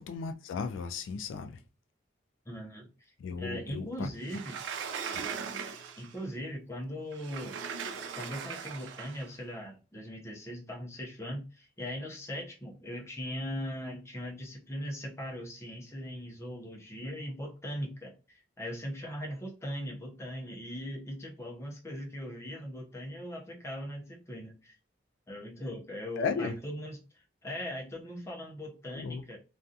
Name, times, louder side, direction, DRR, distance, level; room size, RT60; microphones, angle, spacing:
voice 1, 0.0-1.6 3.2-4.1 5.1-5.3 26.2-26.6 28.9-29.2, left 5 dB, 80° left, 0.3 m, -35 dB
voice 2, 2.5-4.6 6.0-7.6 8.2-24.7 25.3-27.0 27.4-29.4, equal, 15° left, 0.6 m, -40 dB
Sliding door, 4.2-6.2 7.1-9.3, right 6 dB, 70° right, 0.3 m, -39 dB
2.4 x 2.3 x 2.6 m
head